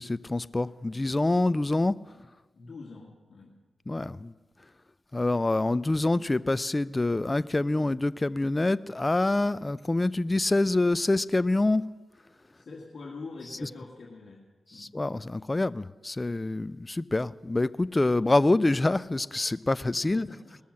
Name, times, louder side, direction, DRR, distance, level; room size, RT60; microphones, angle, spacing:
voice 1, 0.0-2.0 3.9-4.3 5.1-11.8 14.8-20.3, left 2 dB, 25° left, 0.4 m, -26 dB
voice 2, 2.5-3.6 12.5-14.4 14.7-15.0 20.1-20.6, left 3 dB, 60° left, 1.8 m, -44 dB
19.0 x 7.1 x 7.5 m
cardioid pair, 55°, 0 cm